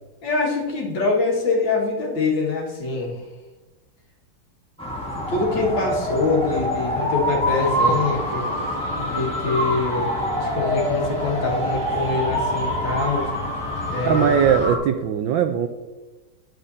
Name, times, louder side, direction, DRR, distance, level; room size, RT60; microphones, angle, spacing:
voice 1, 0.2-3.3 5.1-8.5 9.1-13.3 13.9-14.3, left 3 dB, 60° left, -3 dB, 2.4 m, -24 dB
sound 1, 4.8-14.8, equal, 5° left, 1.1 m, -25 dB
sound 2, 7.6-14.7, equal, 15° right, 3.1 m, -37 dB
voice 2, 14.0-15.7, right 8 dB, 75° right, 7 dB, 1.3 m, -20 dB
10.5 x 7.6 x 2.7 m, 1.2 s
omnidirectional pair, 2.3 m